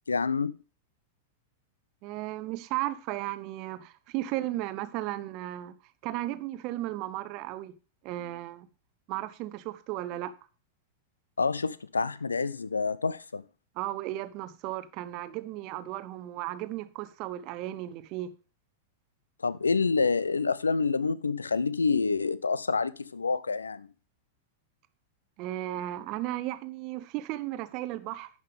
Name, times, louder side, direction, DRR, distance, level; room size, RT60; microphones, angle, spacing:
voice 1, 0.1-0.6 11.4-13.4 19.4-23.9, left 4 dB, 75° left, 0.4 m, -27 dB
voice 2, 2.0-5.7 6.0-7.7 8.0-8.7 9.1-10.3 13.8-18.3 25.4-28.3, right 15 dB, 40° right, 0.7 m, -35 dB
11.0 x 5.5 x 3.4 m
figure-of-eight pair, 95°, 0 cm